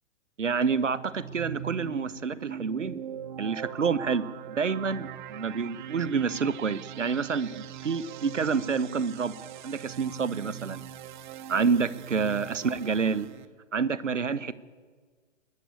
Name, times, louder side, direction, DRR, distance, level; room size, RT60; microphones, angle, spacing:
voice 1, 0.4-3.0 3.4-9.4 9.6-10.8 11.5-13.3 13.7-14.5, right 5 dB, 75° right, 18 dB, 1.1 m, -28 dB
sound 1, 0.9-13.5, right 9 dB, 40° right, 1.1 m, -41 dB
22.0 x 13.5 x 9.7 m, 1.5 s
figure-of-eight pair, 115°, 37 cm